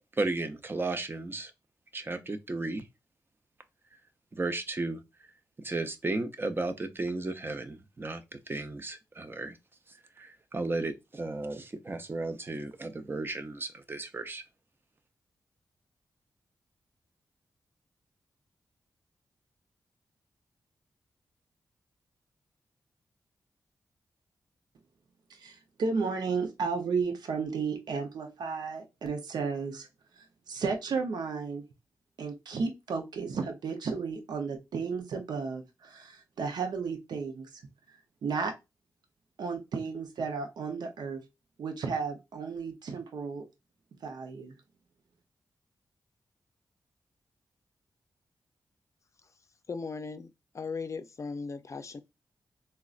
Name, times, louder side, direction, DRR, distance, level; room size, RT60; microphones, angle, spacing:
voice 1, 0.1-1.5 1.9-2.9 4.3-5.0 5.6-9.6 10.2-14.4, right 2 dB, 30° right, 0.6 m, -34 dB
voice 2, 25.3-29.9 30.2-31.7 32.2-37.5 38.2-38.5 39.4-41.2 41.6-43.5 44.0-44.5, right 5 dB, 80° right, 0.6 m, -33 dB
voice 3, 49.7-52.0, left 4 dB, 45° left, 0.5 m, -38 dB
3.7 x 2.2 x 2.4 m
cardioid pair, 65°, 7 cm